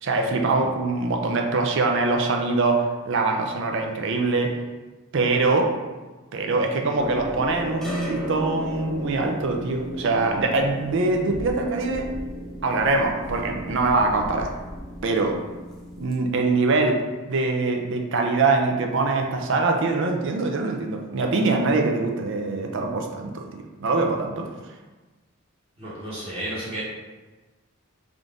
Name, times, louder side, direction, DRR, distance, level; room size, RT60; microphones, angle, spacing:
voice 1, 0.0-4.6 5.1-5.7 6.3-12.1 12.6-14.5 15.0-15.4 16.0-17.0 17.3-24.5, right 3 dB, 60° right, 2 dB, 0.5 m, -23 dB
sound 1, 7.0-16.1, equal, ahead, 0.5 m, -35 dB
voice 2, 25.8-26.8, right 1 dB, 30° right, -11 dB, 1.1 m, -32 dB
3.7 x 2.6 x 3.5 m, 1.2 s
head